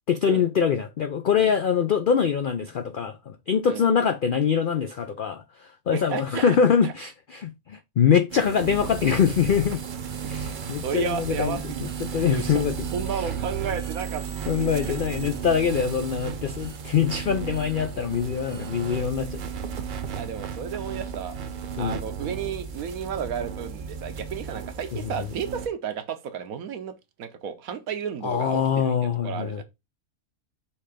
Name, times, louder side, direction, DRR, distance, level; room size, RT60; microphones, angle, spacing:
voice 1, 0.1-9.8 10.3-12.7 13.1-13.3 14.5-19.4 21.8-22.0 25.2-25.3 28.2-29.6, left 7 dB, 70° left, 0.5 m, -24 dB
voice 2, 5.9-6.6 6.8-6.9 10.8-11.8 12.3-14.9 20.2-21.3 21.8-26.9 27.2-29.0 29.2-29.6, right 7 dB, 75° right, 1.3 m, -32 dB
sound 1, 8.3-25.7, right 6 dB, 50° right, 0.6 m, -34 dB
5.8 x 3.3 x 4.9 m
omnidirectional pair, 1.5 m